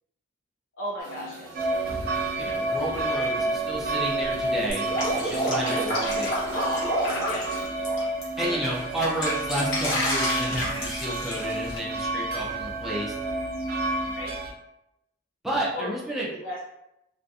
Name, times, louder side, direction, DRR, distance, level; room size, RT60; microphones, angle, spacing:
voice 1, 0.8-1.7 5.7-5.8 7.2-7.5 8.4-8.6 14.1-14.3 15.7-15.9 16.2-16.6, equal, 85° left, -5 dB, 0.5 m, -35 dB
sound 1, 1.0-7.6, right 1 dB, 70° right, 0.9 m, -41 dB
sound 2, 1.5-14.5, right 2 dB, 50° right, 0.5 m, -30 dB
voice 2, 2.4-6.4 8.4-13.1 15.4-16.3, right 1 dB, ahead, -5 dB, 0.5 m, -31 dB
Drip, 4.7-8.2 8.6-11.8, equal, 65° left, 1.0 m, -29 dB
2.6 x 2.5 x 2.3 m, 0.86 s
head